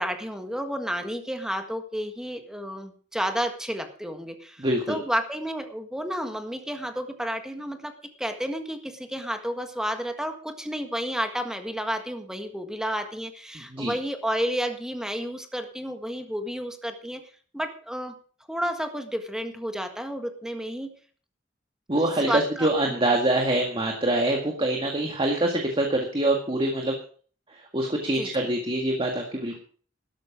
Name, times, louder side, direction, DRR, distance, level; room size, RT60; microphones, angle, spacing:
voice 1, 0.0-7.9 8.2-17.2 17.5-18.1 18.5-20.9 22.3-23.2 28.1-28.5, equal, 5° right, 6 dB, 1.6 m, -31 dB
voice 2, 4.6-5.0 13.7-13.9 21.9-27.0 27.7-29.6, right 1 dB, 30° right, 2 dB, 1.9 m, -25 dB
13.0 x 12.0 x 5.1 m, 0.43 s
head